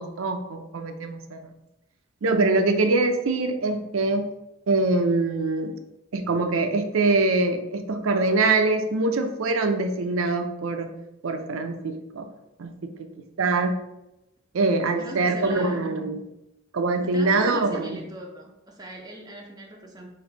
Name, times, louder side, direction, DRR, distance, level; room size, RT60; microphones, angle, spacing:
voice 1, 0.0-1.5 2.2-4.3 4.7-5.8 6.1-10.9 11.2-12.3 12.6-13.1 13.4-13.8 14.5-16.2 16.7-18.0, right 3 dB, 80° right, 6 dB, 0.5 m, -24 dB
voice 2, 14.6-15.8 17.0-20.1, right 1 dB, 20° right, 0 dB, 0.5 m, -40 dB
4.4 x 2.6 x 3.8 m, 0.92 s
head